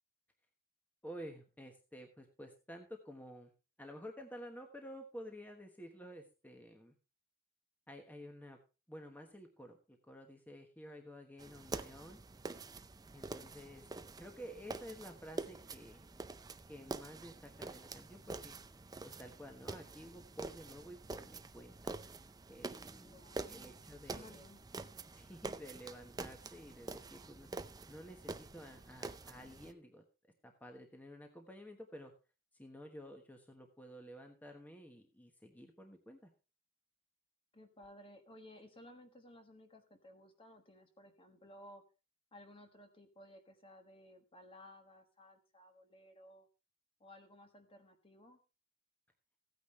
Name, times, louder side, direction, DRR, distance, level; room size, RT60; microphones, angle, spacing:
voice 1, 1.0-3.5 3.8-7.0 7.9-8.6 8.9-12.2 13.1-13.8 14.2-16.1 16.7-18.6 19.0-22.0 22.5-23.1 23.5-24.3 25.1-27.5 27.9-30.0 30.4-32.1 32.5-36.3, equal, 10° left, 3 dB, 1.2 m, -52 dB
sound 1, 11.4-29.7, right 3 dB, 20° right, 0.5 m, -47 dB
voice 2, 23.0-24.6 37.5-41.8 42.3-46.5 47.0-48.4, left 1 dB, 25° left, 6 dB, 1.4 m, -58 dB
15.0 x 9.4 x 3.2 m, 0.31 s
head